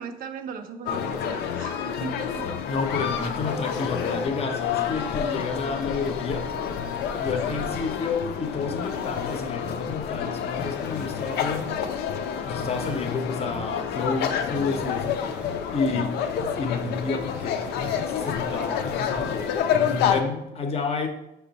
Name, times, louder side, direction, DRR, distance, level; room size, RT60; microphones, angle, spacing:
voice 1, 0.0-2.8 3.8-4.6 5.2-5.4 7.4-7.8 15.9-16.1, right 6 dB, 60° right, 8 dB, 0.5 m, -39 dB
sound 1, 0.9-20.2, left 8 dB, 75° left, 0.4 m, -29 dB
sound 2, 2.3-19.3, right 1 dB, 5° right, 0.5 m, -48 dB
voice 2, 2.7-6.5 7.2-11.7 12.4-15.2 15.7-16.1 16.6-21.1, left 4 dB, 35° left, 5 dB, 0.6 m, -30 dB
5.2 x 2.2 x 4.0 m, 0.88 s
cardioid pair, 110°, 17 cm